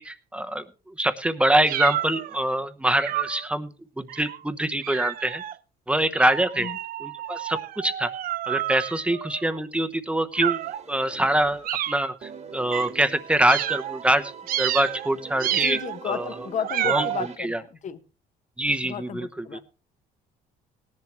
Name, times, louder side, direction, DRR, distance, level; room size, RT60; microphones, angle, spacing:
voice 1, 0.0-5.4 5.9-6.7 7.0-8.1 8.5-14.3 14.6-15.8 16.0-16.3 16.8-17.6 18.6-19.6, right 1 dB, 5° right, 9 dB, 1.0 m, -25 dB
sound 1, 1.7-2.4 3.0-3.5 4.1-4.4 4.8-5.5 6.1-9.6 10.3-10.8 11.6-12.1 12.7-12.9 13.5-14.0 14.5-15.1 15.4-16.0 16.6-17.3, right 12 dB, 60° right, 0.5 m, -30 dB
sound 2, 10.6-11.9 12.2-17.4, right 6 dB, 40° right, 1.7 m, -43 dB
voice 2, 15.5-18.0 18.8-19.6, left 8 dB, 45° left, 10 dB, 1.3 m, -33 dB
18.0 x 10.5 x 3.1 m, 0.32 s
cardioid pair, 110°, 17 cm